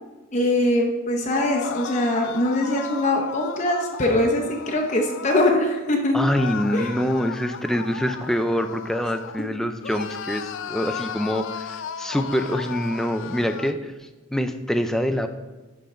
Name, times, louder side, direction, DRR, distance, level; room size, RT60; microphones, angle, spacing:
voice 1, 0.3-6.1 6.7-6.9, left 1 dB, 35° left, 0 dB, 0.8 m, -22 dB
sound 1, 1.2-5.6 6.3-9.5 9.8-13.8, left 7 dB, 70° left, 0.3 m, -35 dB
voice 2, 6.1-13.9 14.3-15.3, equal, ahead, 7 dB, 0.4 m, -25 dB
11.5 x 3.9 x 4.3 m, 1.2 s
head